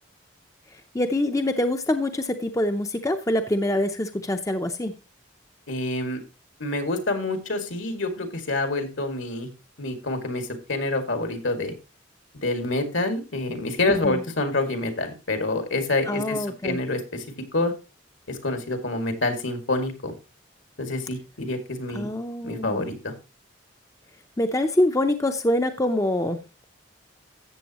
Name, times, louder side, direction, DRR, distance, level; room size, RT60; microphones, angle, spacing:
voice 1, 0.7-4.9 14.0-14.2 16.1-16.8 21.9-22.9 24.4-26.4, left 1 dB, 15° left, 7 dB, 0.6 m, -25 dB
voice 2, 5.7-6.2 6.6-9.5 9.8-11.7 12.3-17.2 17.5-17.7 18.3-20.1 20.8-22.1 22.4-23.1, left 2 dB, 75° left, 6 dB, 2.2 m, -27 dB
13.5 x 8.0 x 3.0 m, 0.29 s
head